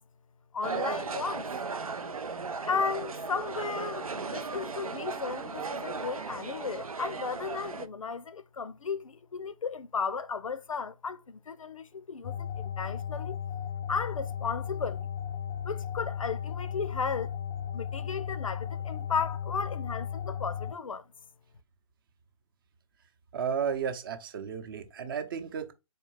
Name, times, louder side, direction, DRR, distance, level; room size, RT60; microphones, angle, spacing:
voice 1, 0.5-1.5 2.7-13.4 13.9-15.1 15.6-17.3 17.7-21.1, left 5 dB, 70° left, 0.5 m, -35 dB
sound 1, 0.6-7.9, right 4 dB, 85° right, 0.5 m, -36 dB
sound 2, 12.2-20.7, left 8 dB, 20° left, 0.4 m, -35 dB
voice 2, 23.3-25.7, right 7 dB, 40° right, 0.7 m, -33 dB
4.3 x 2.8 x 3.2 m
figure-of-eight pair, 130°, 18 cm